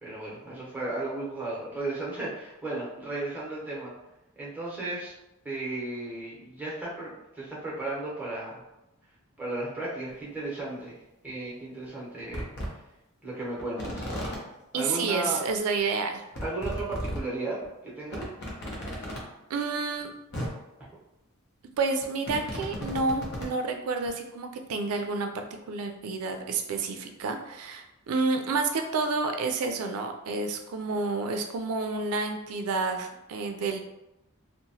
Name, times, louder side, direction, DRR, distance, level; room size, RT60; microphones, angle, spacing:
voice 1, 0.0-3.9 4.4-5.1 5.4-8.6 9.4-10.9 11.2-12.5 13.2-14.1 14.7-15.4 16.4-18.3, right 2 dB, 10° right, -6 dB, 0.8 m, -35 dB
sound 1, 10.1-10.2 11.3-11.4 11.9-12.0 12.3-12.7 13.6-14.4 15.5-15.6 15.8-15.9 16.3-17.2 17.6-17.7 18.1-19.2 20.0-20.1 20.3-20.5 21.8-23.5 24.1-24.2, equal, 50° left, 0.7 m, -35 dB
voice 2, 14.7-16.2 19.5-20.1 21.8-33.8, right 4 dB, 85° right, 5 dB, 0.4 m, -29 dB
2.9 x 2.0 x 2.7 m, 0.92 s
head